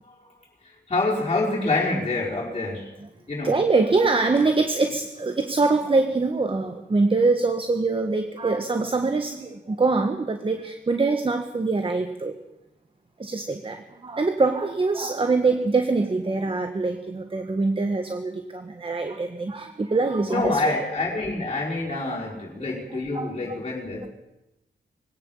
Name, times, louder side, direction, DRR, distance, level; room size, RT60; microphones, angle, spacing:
voice 1, 0.6-2.9 3.3-3.6 20.2-24.1, left 2 dB, 30° left, -4 dB, 5.2 m, -27 dB
voice 2, 3.4-12.3 13.2-20.7 21.9-22.3 22.9-23.6, right 3 dB, 25° right, 7 dB, 1.5 m, -24 dB
22.5 x 17.5 x 7.3 m, 0.96 s
wide cardioid pair, 135°, 19 cm